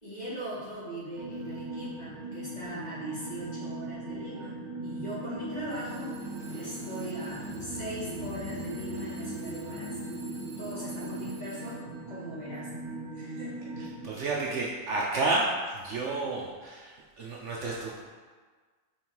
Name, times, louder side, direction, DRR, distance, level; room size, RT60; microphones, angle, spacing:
voice 1, 0.0-6.3 6.5-10.0 10.6-12.7 13.1-13.8, right 1 dB, 30° left, -9 dB, 2.1 m, -40 dB
Alarm / Clock, 0.6-0.8 1.3-1.7 2.3-2.7 3.6-3.7 5.7-12.1, right 2 dB, 30° right, 1.8 m, -53 dB
sound 1, 1.2-14.1, right 2 dB, 85° right, 0.3 m, -39 dB
sound 2, 5.3-11.3, equal, 80° left, 1.2 m, -42 dB
voice 2, 13.8-18.1, right 2 dB, 60° right, -3 dB, 0.9 m, -31 dB
5.4 x 4.3 x 4.6 m, 1.5 s
omnidirectional pair, 1.6 m